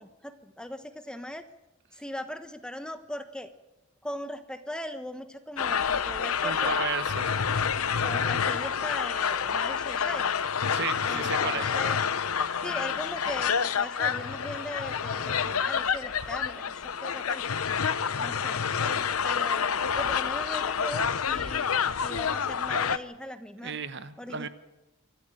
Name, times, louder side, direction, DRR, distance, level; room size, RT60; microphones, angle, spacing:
voice 1, 0.0-1.4 1.9-3.5 4.0-6.8 8.0-10.2 11.0-12.0 12.6-17.4 18.2-19.7 19.9-23.8 24.2-24.5, left 1 dB, 5° left, 9 dB, 1.1 m, -39 dB
sound 1, 5.6-23.0, left 7 dB, 80° left, 0.8 m, -28 dB
voice 2, 6.4-7.3 10.7-11.7 23.6-24.5, right 5 dB, 55° right, 12 dB, 1.1 m, -33 dB
25.0 x 14.0 x 9.0 m, 1.0 s
head